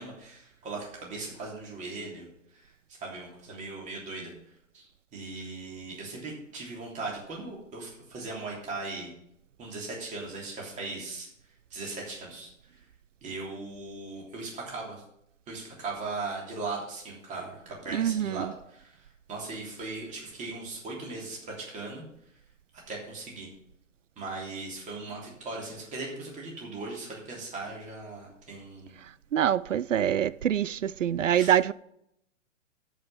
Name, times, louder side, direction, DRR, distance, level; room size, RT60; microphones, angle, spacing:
voice 1, 0.0-2.3 2.5-2.7 3.0-4.3 4.7-9.1 9.6-11.3 11.7-12.8 13.2-15.0 15.5-22.0 22.7-23.5 24.2-28.9 31.3-31.5, right 3 dB, 20° right, 3.1 m, -38 dB
voice 2, 17.9-18.5 29.3-31.7, right 10 dB, 75° right, 0.5 m, -25 dB
13.0 x 5.6 x 5.9 m
figure-of-eight pair, 115°, 38 cm